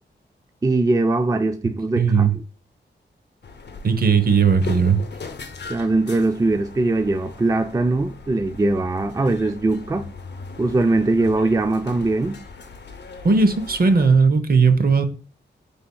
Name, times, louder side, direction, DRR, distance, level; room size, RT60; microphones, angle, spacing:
voice 1, 0.6-2.3 5.7-10.1 10.6-12.4, right 2 dB, 20° right, 0.4 m, -21 dB
voice 2, 1.9-2.3 3.8-5.0 13.2-15.0, right 5 dB, 50° right, 0.7 m, -17 dB
sound 1, 3.4-14.1, left 4 dB, 65° left, 0.7 m, -39 dB
5.2 x 3.4 x 2.2 m
cardioid pair, 60°, 19 cm